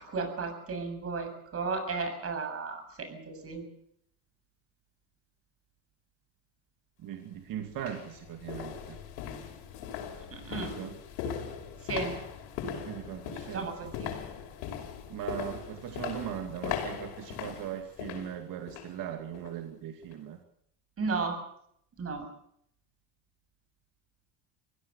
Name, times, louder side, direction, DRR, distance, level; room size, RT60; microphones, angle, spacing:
voice 1, 0.0-3.7 10.3-10.8 11.8-12.2 13.5-14.1 21.0-21.4 22.0-22.3, right 4 dB, 35° right, 7 dB, 7.5 m, -34 dB
sound 1, 7.0-7.1 7.7-19.0 19.3-19.6 20.0-20.1, left 8 dB, 85° left, 5.2 m, -39 dB
voice 2, 7.0-9.0 10.5-11.0 12.7-13.9 15.1-20.4, right 10 dB, 55° right, 5 dB, 2.4 m, -39 dB
23.5 x 17.0 x 6.9 m, 0.71 s
cardioid pair, 120°, 39 cm